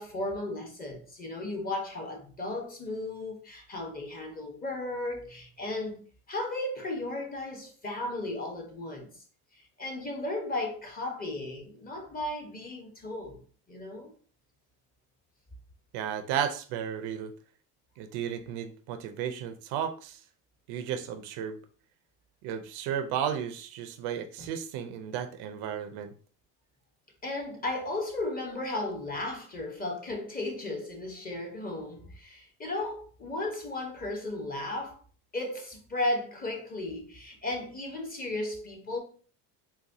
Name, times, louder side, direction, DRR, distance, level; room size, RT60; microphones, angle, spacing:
voice 1, 0.0-9.1 9.5-13.4 13.7-14.1 24.4-24.5 27.2-35.0 35.3-39.0, left 2 dB, 20° left, 0.8 m, -35 dB
voice 2, 15.9-17.3 18.0-20.2 20.7-21.6 22.4-26.1, right 9 dB, 60° right, 0.5 m, -34 dB
4.1 x 2.3 x 2.6 m
supercardioid pair, 105°, 45 cm